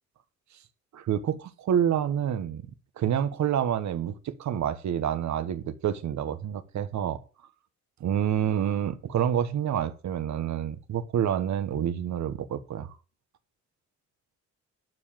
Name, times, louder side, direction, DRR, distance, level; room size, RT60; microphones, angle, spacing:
voice 1, 0.9-2.7 3.0-7.2 8.0-13.0, right 9 dB, 65° right, 1.4 m, -28 dB
12.5 x 4.7 x 7.5 m
cardioid pair, 90°, 30 cm